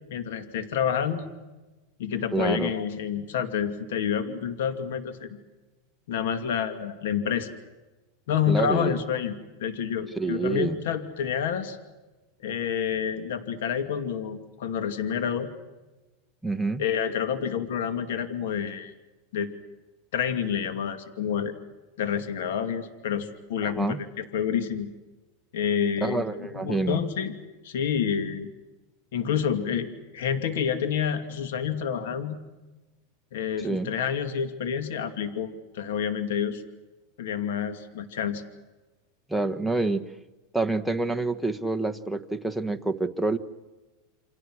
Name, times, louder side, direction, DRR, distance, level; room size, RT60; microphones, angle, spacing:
voice 1, 0.1-1.3 2.0-5.4 6.1-7.5 8.3-11.8 12.4-15.5 16.8-18.9 19.3-19.5 20.1-21.5 22.0-24.9 25.5-27.3 27.6-28.5 29.1-29.9 30.1-32.4 33.3-36.6 37.2-38.4, left 8 dB, 80° left, 8 dB, 2.5 m, -28 dB
voice 2, 2.3-2.7 8.5-9.0 10.2-10.8 16.4-16.8 23.6-24.0 26.0-27.0 33.6-33.9 39.3-40.0 40.5-43.4, right 3 dB, ahead, 4 dB, 1.3 m, -27 dB
29.5 x 26.0 x 6.4 m, 1.1 s
supercardioid pair, 140°, 0 cm